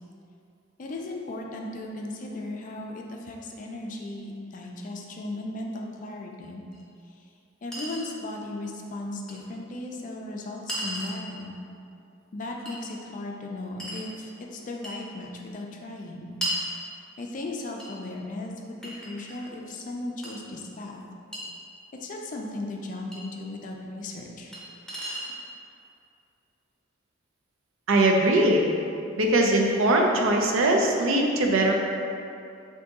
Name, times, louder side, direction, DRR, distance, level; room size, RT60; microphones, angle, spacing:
voice 1, 0.8-6.6 7.2-7.3 7.6-11.5 12.3-16.3 17.2-21.0 22.0-24.5, left 2 dB, 40° left, 0 dB, 0.4 m, -36 dB
Chink clink, 6.7-6.8 7.7-8.1 9.3-9.4 10.7-11.2 12.7-12.8 13.8-14.1 14.8-15.0 16.4-16.6 17.8-17.9 18.8-19.6 20.2-20.3 21.3-21.4 23.1-23.2 24.5-24.6 24.9-25.4, equal, 5° left, 0.8 m, -34 dB
voice 2, 27.9-28.6 29.2-31.7, right 1 dB, 90° right, 1 dB, 0.5 m, -21 dB
3.8 x 2.6 x 3.5 m, 2.6 s
head